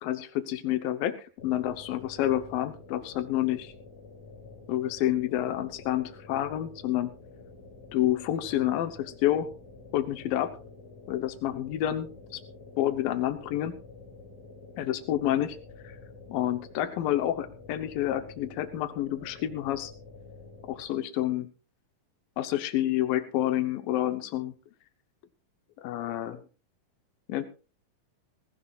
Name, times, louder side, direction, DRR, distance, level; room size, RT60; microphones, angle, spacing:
voice 1, 0.0-3.7 4.7-7.1 7.9-9.5 9.9-10.6 11.1-12.4 12.8-13.8 14.8-15.6 15.8-16.0 16.3-19.9 20.7-21.5 22.4-24.5 25.8-26.4 27.3-27.5, left 13 dB, 90° left, 10 dB, 2.7 m, -29 dB
sound 1, 1.4-20.9, left 3 dB, 50° left, 5.0 m, -49 dB
19.0 x 17.0 x 2.4 m, 0.33 s
omnidirectional pair, 3.9 m